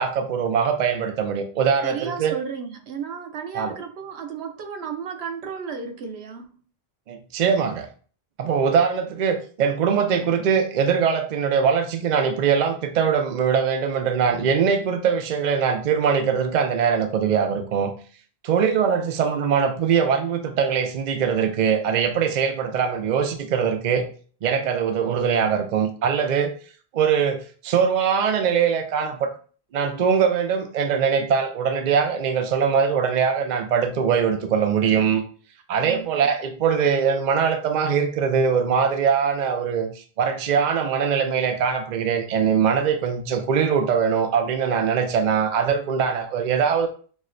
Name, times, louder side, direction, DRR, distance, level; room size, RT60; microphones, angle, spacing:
voice 1, 0.0-2.3 3.5-3.7 7.1-7.9 8.4-17.9 18.4-24.0 24.4-26.5 26.9-29.3 29.7-35.2 35.7-46.9, right 6 dB, 55° right, 0.6 m, -22 dB
voice 2, 1.8-6.5 35.8-36.2, right 6 dB, 80° right, 0.9 m, -33 dB
6.1 x 2.1 x 2.5 m
omnidirectional pair, 1.1 m